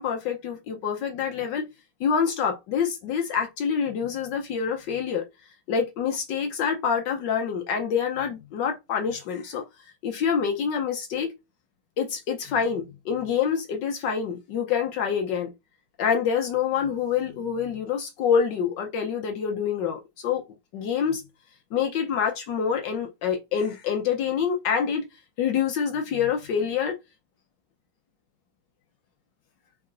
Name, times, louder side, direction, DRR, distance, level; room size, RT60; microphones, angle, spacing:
voice 1, 0.0-1.7 2.0-5.2 5.7-9.6 10.0-11.3 12.0-15.5 16.0-20.4 20.7-21.2 21.7-25.0 25.4-26.9, left 7 dB, 70° left, 1.3 m, -26 dB
4.7 x 3.4 x 2.4 m
omnidirectional pair, 2.1 m